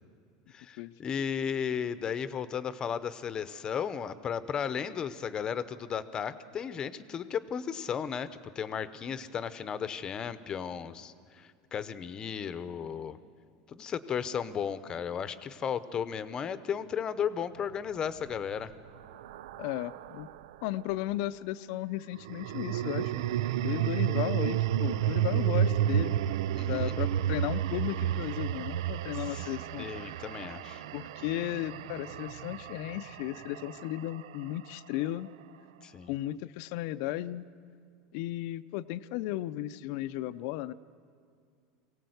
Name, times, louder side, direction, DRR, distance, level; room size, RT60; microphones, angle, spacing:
voice 1, 0.5-8.3 8.5-13.2 13.7-18.7 26.5-27.0 29.1-30.8 35.8-36.1, left 7 dB, 30° left, 14 dB, 0.8 m, -35 dB
sound 1, 18.0-20.5 22.1-34.4, right 11 dB, 85° right, 0.5 m, -31 dB
voice 2, 19.6-20.3 20.6-23.2 23.6-26.2 26.7-30.1 30.9-35.3 36.1-37.4 38.1-40.7, left 15 dB, 65° left, 14 dB, 0.6 m, -35 dB
23.5 x 17.5 x 8.0 m, 2.2 s
supercardioid pair, 135°, 3 cm